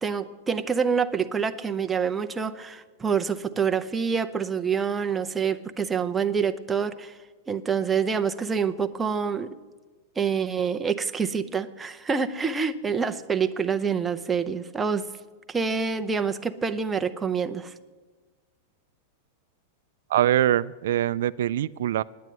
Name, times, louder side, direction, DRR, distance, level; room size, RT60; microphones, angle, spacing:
voice 1, 0.0-7.2 7.5-9.6 10.2-15.0 15.5-17.7, right 6 dB, 10° right, 8 dB, 0.5 m, -26 dB
voice 2, 20.1-22.0, right 12 dB, 75° right, 15 dB, 0.3 m, -23 dB
9.7 x 9.4 x 9.3 m, 1.3 s
supercardioid pair, 155°, 0 cm